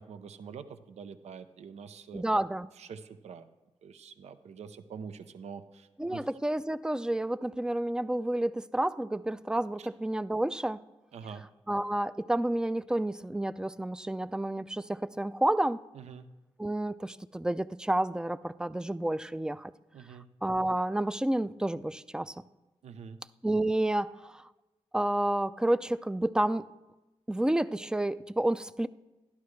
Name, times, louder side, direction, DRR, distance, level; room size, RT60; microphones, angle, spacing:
voice 1, 0.0-2.2 2.7-3.5 3.8-6.3 9.8-9.9 11.1-11.4 15.9-16.3 19.9-20.3 22.8-23.2, right 6 dB, 85° right, 10 dB, 0.5 m, -45 dB
voice 2, 2.1-2.7 6.0-10.8 11.7-15.8 16.6-19.7 20.4-22.3 23.4-24.4 24.9-26.6 27.3-28.9, right 1 dB, 5° right, 16 dB, 0.3 m, -30 dB
12.5 x 11.0 x 3.2 m, 1.1 s
cardioid pair, 65°, 11 cm